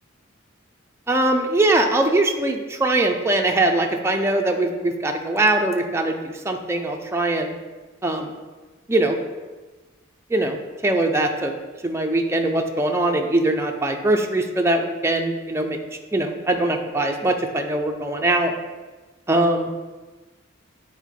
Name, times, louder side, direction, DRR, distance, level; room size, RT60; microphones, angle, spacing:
voice 1, 1.1-6.2 6.4-7.5 8.0-8.3 8.9-9.2 10.3-10.6 10.8-11.5 11.8-15.8 16.1-18.5 19.3-19.7, right 2 dB, 10° right, 2 dB, 0.4 m, -21 dB
9.2 x 4.1 x 3.6 m, 1.3 s
head